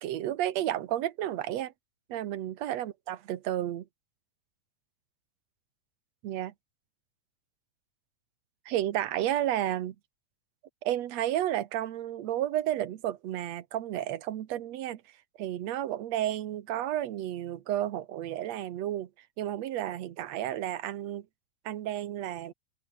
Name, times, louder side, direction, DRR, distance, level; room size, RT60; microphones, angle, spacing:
voice 1, 0.0-1.7 2.1-3.9 6.2-6.5 8.7-10.0 10.8-15.0 15.4-19.1 19.4-21.3 21.7-22.5, right 12 dB, 65° right, 2.3 m, -32 dB
open air
omnidirectional pair, 3.5 m